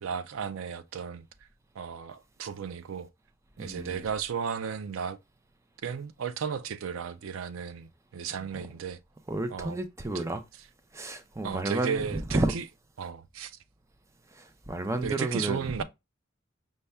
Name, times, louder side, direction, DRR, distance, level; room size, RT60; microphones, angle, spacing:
voice 1, 0.0-1.2 1.8-3.1 3.6-5.2 5.8-9.0 9.5-9.8 10.1-10.2 11.4-12.6 13.0-13.6 15.0-15.8, right 6 dB, 85° right, 0.4 m, -34 dB
voice 2, 3.6-4.1 9.3-10.4 10.9-12.5 14.3-15.7, right 2 dB, 15° right, 0.5 m, -31 dB
5.4 x 2.2 x 3.4 m
head